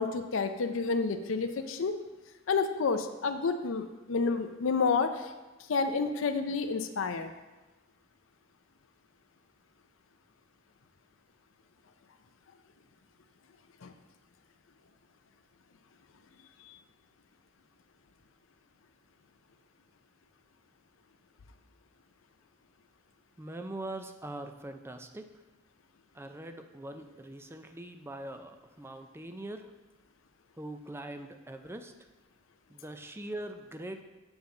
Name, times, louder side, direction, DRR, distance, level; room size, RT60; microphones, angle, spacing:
voice 1, 0.0-2.0 2.5-5.3 5.7-7.3 13.8-13.9, left 4 dB, 70° left, 7 dB, 0.5 m, -29 dB
voice 2, 23.4-25.3 26.1-29.7 30.5-31.9 32.7-34.0, right 1 dB, 10° right, 7 dB, 0.5 m, -42 dB
7.1 x 6.9 x 3.9 m, 1.1 s
head